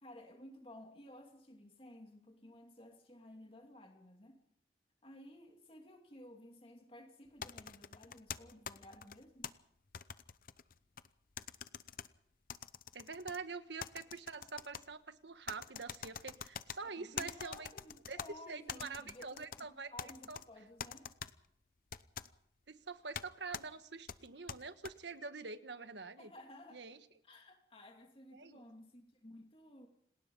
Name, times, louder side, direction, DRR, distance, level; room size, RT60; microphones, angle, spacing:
voice 1, 0.0-4.4 5.0-9.5 17.0-21.1 26.2-26.8 27.2-29.9, left 1 dB, 30° left, 4 dB, 2.5 m, -55 dB
sound 1, 7.4-9.5 9.9-11.1 11.4-12.1 12.5-13.4 13.8-14.8 15.5-16.8 17.2-18.3 18.7-19.6 20.0-20.4 20.8-21.3 21.9-22.3 23.1-23.3 23.5-23.6 24.1-24.9, left 7 dB, 50° left, 0.8 m, -45 dB
voice 2, 12.9-17.7 18.1-18.2 18.5-19.9 20.3-20.4 22.7-26.3 26.7-27.0 28.3-28.6, right 4 dB, 80° right, 10 dB, 1.5 m, -46 dB
28.0 x 19.5 x 5.5 m, 0.68 s
head